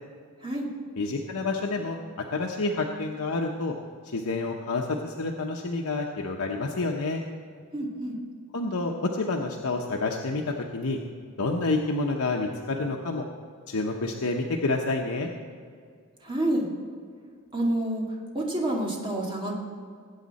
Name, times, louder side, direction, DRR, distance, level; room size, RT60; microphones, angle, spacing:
voice 1, 1.0-2.0 2.3-3.8 4.0-7.2 8.5-11.0 11.4-13.2 13.7-15.3, left 3 dB, 85° left, 1 dB, 0.9 m, -28 dB
voice 2, 7.7-8.2 16.2-16.7 17.5-18.0 18.3-19.5, right 1 dB, 25° right, -2 dB, 2.1 m, -28 dB
19.5 x 8.6 x 4.1 m, 2.2 s
head